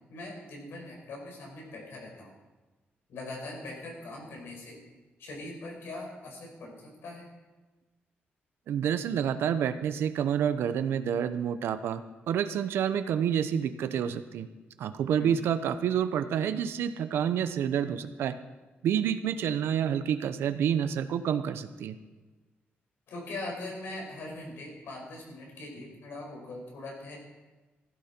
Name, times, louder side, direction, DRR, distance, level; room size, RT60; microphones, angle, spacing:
voice 1, 0.1-2.3 3.1-4.8 5.2-7.3 15.2-15.4 23.1-27.2, left 2 dB, 75° left, 0 dB, 5.3 m, -41 dB
voice 2, 8.7-12.0 12.3-14.5 14.8-18.4 18.8-22.0, right 8 dB, 85° right, 11 dB, 0.8 m, -28 dB
15.0 x 14.0 x 4.5 m, 1.2 s
wide cardioid pair, 175°, 4 cm